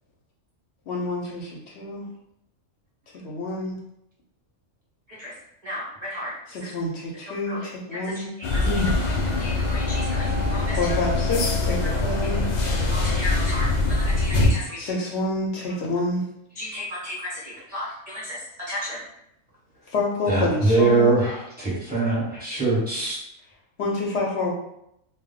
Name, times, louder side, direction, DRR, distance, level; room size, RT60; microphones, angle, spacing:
voice 1, 0.9-2.1 3.2-3.8 6.5-8.3 10.8-12.6 14.8-16.2 19.9-21.2 23.8-24.5, left 2 dB, 65° left, -2 dB, 0.8 m, -28 dB
voice 2, 5.6-6.3 6.6-6.7 7.5-11.0 12.9-14.8 16.6-19.0, left 1 dB, 55° right, -5 dB, 0.4 m, -35 dB
sound 1, 8.4-14.5, left 3 dB, 90° left, 0.4 m, -23 dB
voice 3, 20.3-23.2, right 3 dB, 10° right, -7 dB, 0.9 m, -22 dB
2.1 x 2.1 x 3.8 m, 0.78 s
omnidirectional pair, 1.3 m